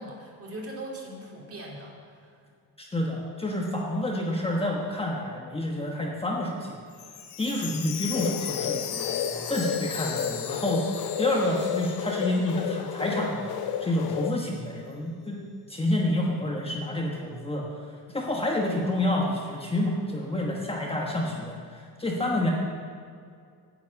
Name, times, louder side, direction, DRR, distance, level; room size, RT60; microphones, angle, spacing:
voice 1, 0.0-2.3 7.6-7.7 22.1-22.5, right 1 dB, 35° right, -2 dB, 2.7 m, -40 dB
voice 2, 2.8-6.8 7.4-13.5 13.8-15.4 15.7-22.5, left 1 dB, 15° left, -2 dB, 1.2 m, -29 dB
Chime, 6.9-12.9 13.2-13.3 13.9-14.0, left 8 dB, 85° left, 1.3 m, -37 dB
sound 1, 8.1-14.3, left 8 dB, 65° left, 0.7 m, -32 dB
9.8 x 7.5 x 8.4 m, 2.3 s
cardioid pair, 150°, 39 cm